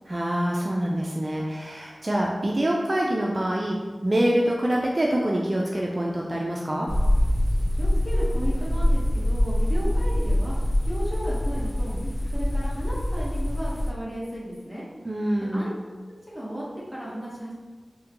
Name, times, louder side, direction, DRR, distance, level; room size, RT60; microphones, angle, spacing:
voice 1, 0.1-3.8 4.0-6.9 15.0-15.7, right 1 dB, 40° right, -2 dB, 0.3 m, -25 dB
sound 1, 6.9-13.9, left 1 dB, 60° left, 0.4 m, -24 dB
voice 2, 7.8-10.5 10.8-14.9 15.5-15.7 16.3-17.5, equal, 5° left, -7 dB, 1.1 m, -34 dB
3.7 x 2.1 x 2.9 m, 1.4 s
wide cardioid pair, 55°, 0 cm